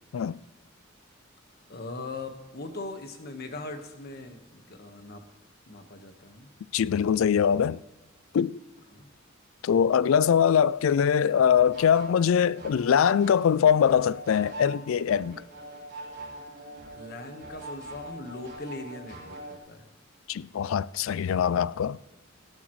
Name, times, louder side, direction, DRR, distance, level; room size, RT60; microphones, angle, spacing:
voice 1, 1.7-5.2 5.7-6.5 8.9-9.1 16.9-19.9, left 2 dB, 50° left, 1.4 m, -40 dB
voice 2, 6.7-7.8 8.3-8.6 9.6-15.4 20.3-22.0, left 8 dB, 70° left, 0.4 m, -22 dB
sound 1, 11.4-19.6, right 1 dB, 50° right, 4.0 m, -43 dB
17.5 x 12.0 x 3.2 m
head